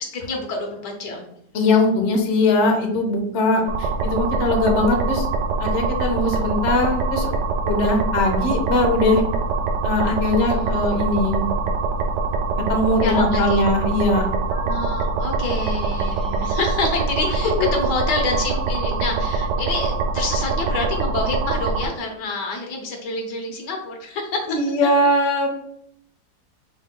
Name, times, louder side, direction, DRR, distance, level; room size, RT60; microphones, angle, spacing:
voice 1, 0.1-1.2 6.2-6.5 10.2-10.7 13.0-13.6 14.5-24.6, left 3 dB, 80° left, 2 dB, 1.5 m, -27 dB
voice 2, 1.5-5.3 5.6-7.4 7.7-9.2 9.8-11.5 12.7-14.3 17.6-17.7 24.5-25.5, left 2 dB, 50° left, 2 dB, 1.0 m, -20 dB
sound 1, 3.7-21.8, right 4 dB, 75° right, 1.2 m, -24 dB
5.5 x 3.6 x 2.2 m, 0.71 s
omnidirectional pair, 1.8 m